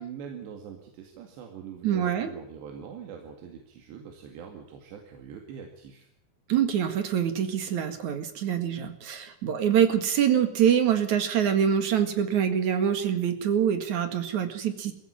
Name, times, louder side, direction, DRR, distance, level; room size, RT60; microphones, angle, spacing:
voice 1, 0.0-6.1, right 7 dB, 85° right, 3 dB, 4.4 m, -43 dB
voice 2, 1.8-2.3 6.5-14.9, right 9 dB, 55° right, 8 dB, 2.8 m, -25 dB
22.0 x 15.5 x 9.1 m, 0.73 s
omnidirectional pair, 4.9 m